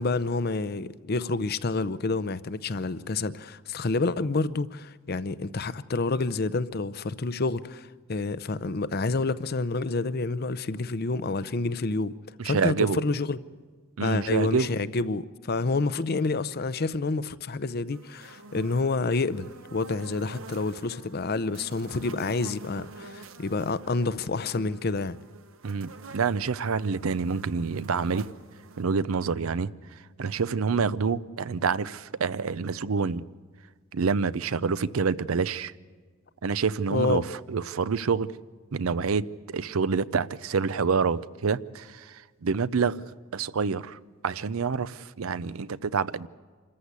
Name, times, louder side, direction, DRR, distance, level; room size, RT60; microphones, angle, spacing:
voice 1, 0.0-12.1 12.4-13.4 14.0-25.2 36.9-37.2, left 3 dB, 50° left, 0.6 m, -28 dB
voice 2, 12.4-13.0 14.0-14.7 25.6-28.3 28.8-33.3 33.9-35.7 36.4-37.2 37.5-38.3 38.7-43.1 43.3-46.3, right 5 dB, 90° right, 0.6 m, -27 dB
sound 1, 17.9-28.8, right 3 dB, 75° right, 1.1 m, -47 dB
26.5 x 14.5 x 8.2 m
head